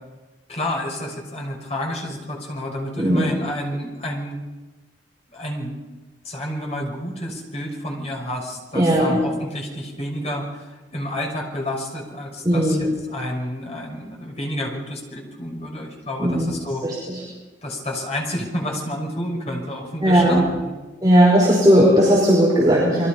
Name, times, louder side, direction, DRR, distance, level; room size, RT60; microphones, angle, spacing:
voice 1, 0.5-4.4 5.3-5.7 6.2-16.8 17.6-20.7, left 1 dB, 35° left, 1 dB, 6.2 m, -30 dB
voice 2, 8.7-9.2 12.4-12.9 16.2-16.5 16.8-16.9 20.0-20.4 21.0-23.1, equal, 20° right, -5 dB, 5.2 m, -16 dB
29.5 x 23.0 x 5.5 m, 1.2 s
head